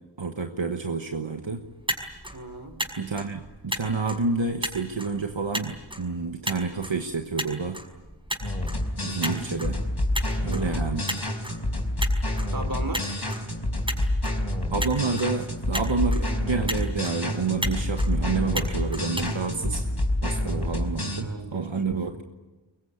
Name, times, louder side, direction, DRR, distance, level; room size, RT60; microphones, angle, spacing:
voice 1, 0.2-1.6 3.0-7.8 9.0-9.8 10.4-11.1 14.7-19.8 20.2-22.2, right 4 dB, 80° right, 5 dB, 1.4 m, -29 dB
Motor vehicle (road), 1.6-20.2, equal, 10° right, 5.5 m, -37 dB
voice 2, 2.3-2.8 10.6-11.0 12.5-13.1 21.2-22.0, right 2 dB, 50° right, 8 dB, 3.7 m, -36 dB
sound 1, 8.4-21.2, left 1 dB, 55° left, 4.8 m, -28 dB
23.5 x 22.5 x 9.7 m, 1.2 s
wide cardioid pair, 40°, 45 cm